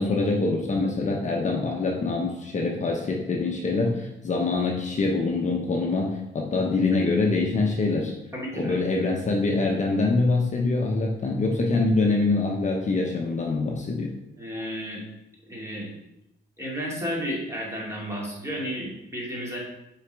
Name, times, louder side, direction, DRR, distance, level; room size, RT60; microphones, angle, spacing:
voice 1, 0.0-8.1 8.5-14.1, left 3 dB, 35° left, 0 dB, 0.9 m, -24 dB
voice 2, 8.3-8.7 14.4-15.0 15.5-15.9 16.6-19.6, equal, 15° right, -4 dB, 2.4 m, -32 dB
5.6 x 4.1 x 4.5 m, 0.88 s
cardioid pair, 90°, 20 cm